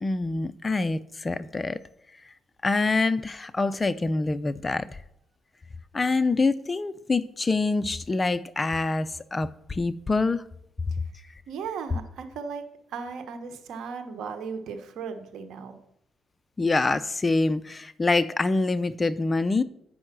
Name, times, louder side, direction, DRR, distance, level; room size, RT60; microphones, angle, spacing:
voice 1, 0.0-1.8 2.6-5.0 5.9-10.4 16.6-19.6, left 3 dB, 25° left, 0.5 m, -25 dB
voice 2, 11.5-12.6 12.9-15.8, right 5 dB, 75° right, 1.1 m, -36 dB
7.8 x 5.4 x 6.0 m
cardioid pair, 90°, 0 cm